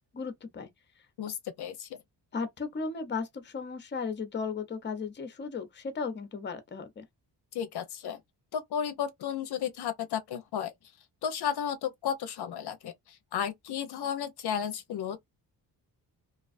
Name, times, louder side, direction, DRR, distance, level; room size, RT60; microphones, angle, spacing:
voice 1, 0.1-0.7 2.3-7.0, left 5 dB, 25° left, 0.6 m, -35 dB
voice 2, 1.2-2.0 7.5-8.2 8.5-10.7 11.2-15.2, left 8 dB, 65° left, 0.6 m, -33 dB
2.4 x 2.3 x 2.4 m
cardioid pair, 110°, 42 cm